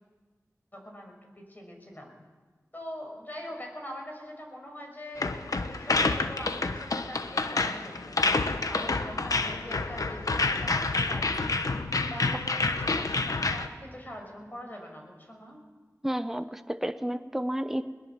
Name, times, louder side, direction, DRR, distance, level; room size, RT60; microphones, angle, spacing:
voice 1, 0.7-2.2 2.7-8.2 8.7-11.4 12.1-15.6, equal, 30° left, 2 dB, 6.1 m, -43 dB
sound 1, 5.2-13.7, left 3 dB, 90° left, 1.0 m, -28 dB
voice 2, 16.0-17.9, equal, 5° right, 10 dB, 0.8 m, -31 dB
21.0 x 19.5 x 7.4 m, 1.3 s
wide cardioid pair, 45°, 6 cm